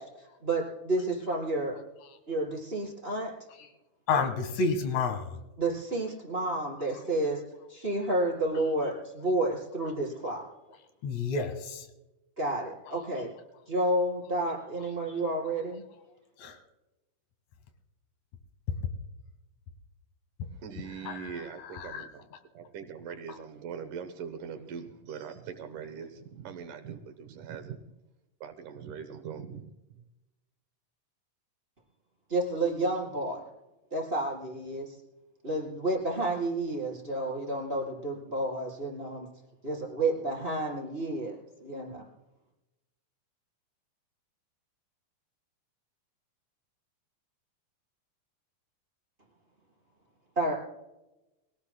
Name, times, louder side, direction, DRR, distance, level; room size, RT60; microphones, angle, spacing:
voice 1, 0.0-1.8 2.3-3.3 5.6-7.4 7.7-10.4 12.4-13.3 13.7-15.8 32.3-33.4 33.9-35.0 35.4-39.3 39.6-42.0 50.4-50.5, right 2 dB, 15° right, -3 dB, 4.1 m, -30 dB
voice 2, 4.1-5.4 11.0-11.9 16.4-16.6 21.0-22.1, left 4 dB, 60° left, 7 dB, 2.9 m, -30 dB
voice 3, 20.4-22.3 22.5-27.8 28.4-30.0, right 7 dB, 75° right, 8 dB, 2.6 m, -42 dB
24.0 x 17.5 x 2.2 m, 0.99 s
omnidirectional pair, 3.7 m